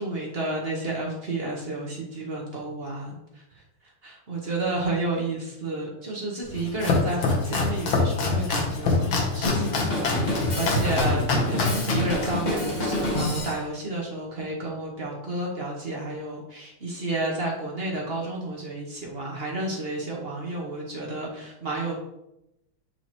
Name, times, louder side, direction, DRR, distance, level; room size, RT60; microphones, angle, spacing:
voice 1, 0.0-3.4 4.0-21.9, right 2 dB, 45° right, -2 dB, 0.8 m, -31 dB
Domestic sounds home sounds, 6.4-13.4, left 3 dB, 70° left, 1.8 m, -26 dB
Drum kit, 9.4-13.6, left 1 dB, 30° left, 0.9 m, -28 dB
7.8 x 4.3 x 3.0 m, 0.89 s
omnidirectional pair, 2.4 m